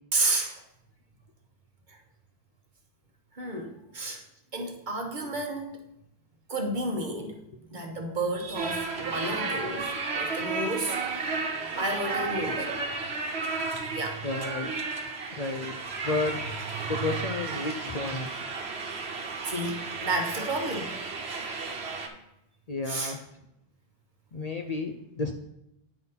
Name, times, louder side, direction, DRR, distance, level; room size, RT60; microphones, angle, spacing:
voice 1, 0.1-0.6 1.9-2.0 3.3-4.2 4.5-5.8 6.5-7.4 7.7-11.4 11.8-12.8 13.9-14.3 16.7-17.0 19.4-21.0 22.9-23.2, right 2 dB, 50° right, 2 dB, 1.2 m, -31 dB
sound 1, 8.5-22.1, right 4 dB, 80° right, 1.2 m, -33 dB
voice 2, 14.2-14.7 15.4-15.8 16.0-16.4 16.9-18.3 22.7-23.2 24.3-25.3, left 3 dB, 45° left, 4 dB, 0.6 m, -31 dB
9.2 x 4.1 x 5.6 m, 0.82 s
omnidirectional pair, 1.1 m